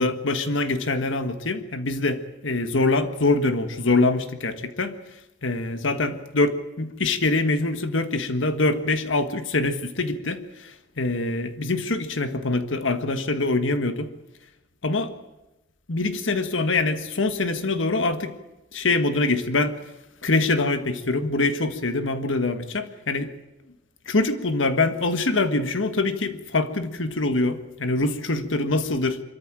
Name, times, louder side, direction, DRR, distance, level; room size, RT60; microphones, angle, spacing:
voice 1, 0.0-5.0 5.4-10.7 11.0-14.1 14.8-15.1 15.9-18.4 18.7-19.8 20.2-23.3 24.1-29.2, left 2 dB, 85° left, 9 dB, 1.6 m, -24 dB
25.0 x 14.0 x 9.0 m, 1.0 s
head